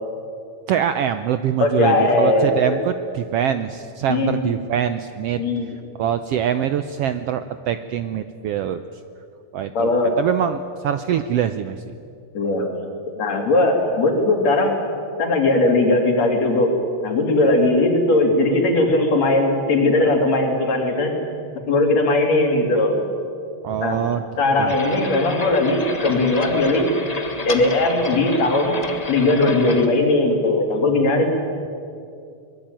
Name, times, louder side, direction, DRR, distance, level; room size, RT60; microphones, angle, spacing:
voice 1, 0.7-5.4 6.0-8.8 9.5-12.0 23.6-24.2 24.6-24.7, right 9 dB, 75° right, 10 dB, 1.5 m, -24 dB
voice 2, 1.6-2.8 4.1-4.4 5.4-5.7 9.8-10.2 12.3-12.7 13.2-14.8 15.2-16.8 17.0-21.3 21.7-23.1 23.8-24.0 24.4-26.9 27.4-31.4, left 2 dB, 60° left, 3 dB, 4.2 m, -19 dB
sound 1, 24.7-29.9, left 2 dB, 40° left, 0.5 m, -30 dB
23.0 x 20.5 x 9.0 m, 2.4 s
omnidirectional pair, 3.4 m